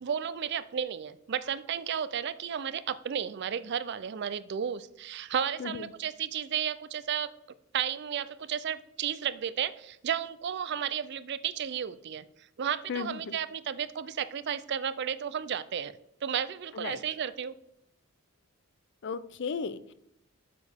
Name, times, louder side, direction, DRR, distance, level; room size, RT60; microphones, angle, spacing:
voice 1, 0.0-7.3 7.7-12.2 12.6-17.5, right 8 dB, 55° right, 16 dB, 0.4 m, -33 dB
voice 2, 12.9-13.4 16.7-17.0 19.0-19.9, left 5 dB, 55° left, 15 dB, 0.5 m, -35 dB
8.3 x 6.8 x 3.5 m, 0.75 s
head